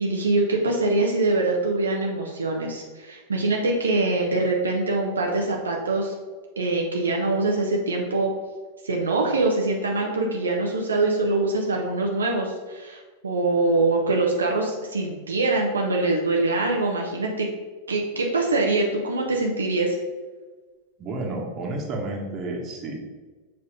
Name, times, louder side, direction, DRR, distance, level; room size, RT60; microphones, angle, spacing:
voice 1, 0.0-6.1 6.6-8.3 8.8-17.5 17.9-20.0, right 2 dB, 70° right, -1 dB, 0.9 m, -24 dB
voice 2, 21.0-22.9, right 2 dB, 30° right, 0 dB, 1.6 m, -31 dB
7.0 x 4.0 x 5.0 m, 1.3 s
figure-of-eight pair, 90°, 0 cm